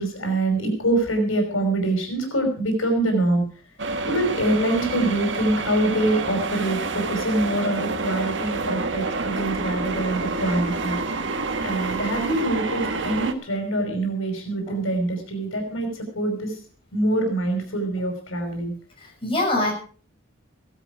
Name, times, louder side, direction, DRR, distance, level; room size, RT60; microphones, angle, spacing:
voice 1, 0.0-3.4 4.1-11.0 11.6-16.6 16.9-18.7, right 1 dB, 90° left, 4 dB, 5.4 m, -24 dB
sound 1, 3.8-13.3, right 3 dB, 60° right, 1.5 m, -28 dB
voice 2, 19.0-19.7, left 2 dB, 25° left, -1 dB, 6.9 m, -25 dB
16.5 x 13.0 x 4.9 m, 0.42 s
head